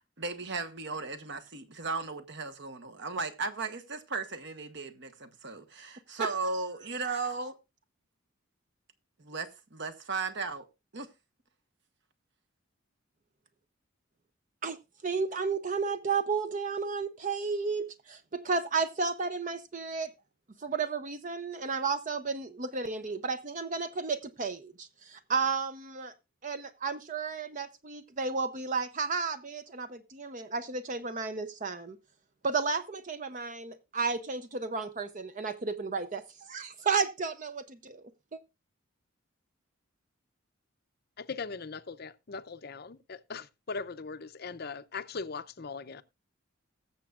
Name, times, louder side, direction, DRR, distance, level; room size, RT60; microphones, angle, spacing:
voice 1, 0.2-7.5 9.2-10.6 10.9-11.1, right 4 dB, 55° right, 1.2 m, -36 dB
voice 2, 15.0-20.1 20.6-26.1 26.4-32.0 32.4-38.0 38.3-38.4, right 4 dB, 35° right, 0.6 m, -33 dB
voice 3, 41.2-46.0, left 4 dB, 50° left, 0.6 m, -40 dB
21.0 x 7.0 x 2.4 m
head